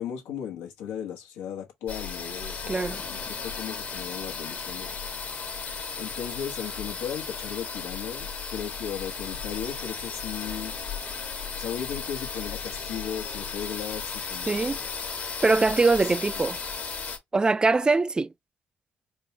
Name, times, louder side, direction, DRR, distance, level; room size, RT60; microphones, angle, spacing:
voice 1, 0.0-4.9 6.0-10.8 11.5-14.9 16.0-16.5, left 9 dB, 85° left, 1.1 m, -36 dB
sound 1, 1.9-17.2, left 5 dB, 50° left, 1.2 m, -35 dB
voice 2, 2.7-3.0 14.5-14.8 15.4-16.6 17.3-18.3, right 3 dB, 20° right, 0.3 m, -22 dB
4.4 x 2.2 x 2.8 m
supercardioid pair, 65°, 4 cm